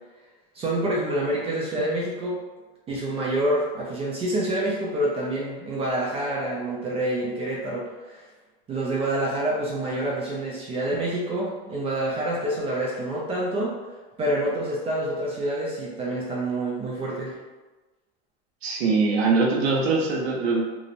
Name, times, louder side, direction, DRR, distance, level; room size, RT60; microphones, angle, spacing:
voice 1, 0.5-2.4 2.9-8.3 8.7-13.7 14.2-17.4, right 1 dB, 20° right, -5 dB, 0.4 m, -27 dB
voice 2, 18.6-20.6, right 4 dB, 85° right, -2 dB, 0.7 m, -22 dB
2.9 x 2.0 x 2.5 m, 1.2 s
supercardioid pair, 130°, 30 cm